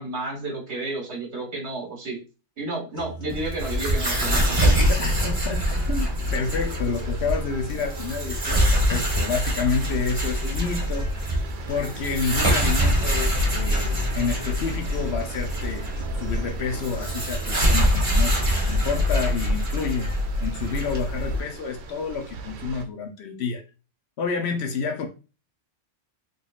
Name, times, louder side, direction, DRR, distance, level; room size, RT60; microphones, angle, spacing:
voice 1, 0.0-2.2 2.6-4.8, right 2 dB, 60° right, 0 dB, 1.6 m, -31 dB
sound 1, 2.9-18.9, right 2 dB, 35° left, 1.0 m, -40 dB
sound 2, 3.3-21.4, equal, 30° right, 1.0 m, -24 dB
sound 3, 3.6-22.8, right 4 dB, 80° right, 0.9 m, -41 dB
voice 2, 5.0-5.6 5.9-11.1 11.7-15.9 16.2-20.1 20.4-23.6 24.2-25.1, left 5 dB, 65° left, 4 dB, 0.8 m, -29 dB
3.8 x 3.3 x 2.3 m, 0.31 s
omnidirectional pair, 1.3 m